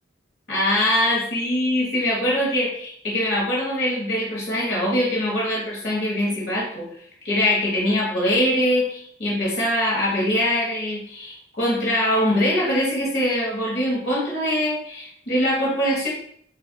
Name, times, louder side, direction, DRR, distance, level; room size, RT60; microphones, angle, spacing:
voice 1, 0.5-6.8 7.2-16.1, left 1 dB, 60° left, -5 dB, 1.3 m, -23 dB
5.5 x 2.5 x 2.3 m, 0.65 s
head